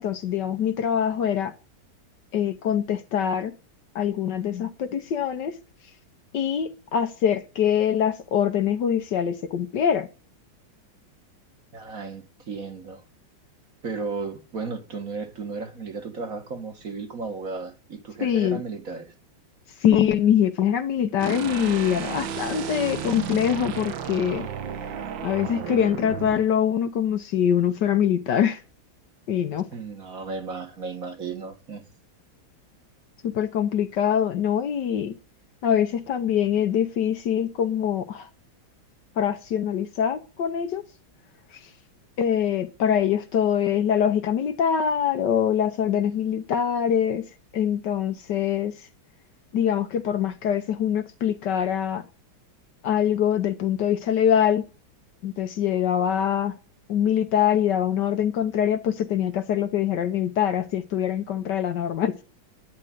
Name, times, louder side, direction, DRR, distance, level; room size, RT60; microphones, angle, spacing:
voice 1, 0.0-1.5 2.3-3.5 3.9-5.5 6.3-10.1 18.2-18.6 19.8-24.5 25.2-28.6 29.3-29.7 33.2-35.1 35.6-38.3 39.2-40.9 42.2-47.2 47.5-48.7 49.5-52.0 52.8-54.6 55.2-56.6 56.9-62.2, left 9 dB, 65° left, 1.4 m, -24 dB
voice 2, 11.7-13.0 13.8-19.1 29.7-31.8, right 4 dB, 45° right, 2.1 m, -34 dB
sound 1, 21.2-26.4, right 8 dB, 70° right, 1.8 m, -33 dB
9.9 x 9.8 x 9.1 m
omnidirectional pair, 2.2 m